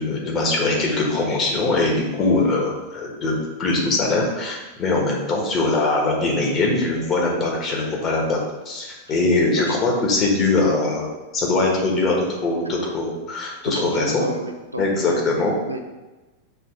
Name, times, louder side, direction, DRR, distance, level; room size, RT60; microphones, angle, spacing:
voice 1, 0.0-8.4 8.6-14.3 14.8-15.5, left 2 dB, 30° left, -1 dB, 1.5 m, -22 dB
voice 2, 13.6-15.2 15.7-15.8, right 1 dB, 85° right, 4 dB, 0.6 m, -30 dB
5.1 x 3.6 x 5.1 m, 1.1 s
figure-of-eight pair, 90°, 0 cm